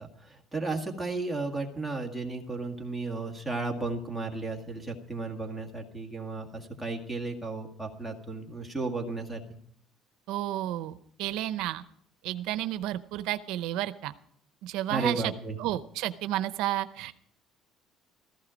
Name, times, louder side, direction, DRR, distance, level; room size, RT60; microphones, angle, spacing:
voice 1, 0.0-9.4 14.9-15.6, right 3 dB, ahead, 0 dB, 1.9 m, -34 dB
voice 2, 10.3-10.9 11.2-11.8 12.2-14.1 14.6-15.3 15.6-17.1, right 14 dB, 85° right, 13 dB, 0.6 m, -31 dB
15.5 x 14.0 x 5.0 m, 0.65 s
cardioid pair, 155°, 0 cm